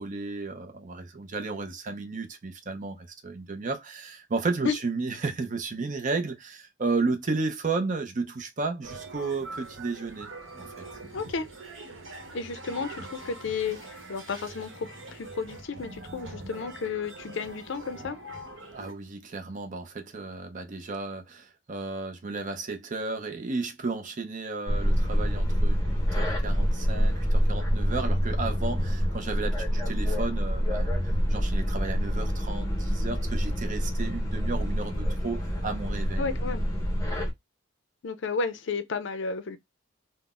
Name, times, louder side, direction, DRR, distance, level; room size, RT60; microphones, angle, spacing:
voice 1, 0.0-10.7 18.7-36.3, right 3 dB, 40° right, 0.5 m, -33 dB
sound 1, 8.8-18.9, right 2 dB, 65° right, 0.9 m, -43 dB
voice 2, 11.1-11.5 12.3-18.2 36.2-36.6 38.0-39.6, left 5 dB, 60° left, 0.5 m, -32 dB
sound 2, 24.7-37.3, equal, 15° left, 0.7 m, -27 dB
3.8 x 2.0 x 2.3 m
head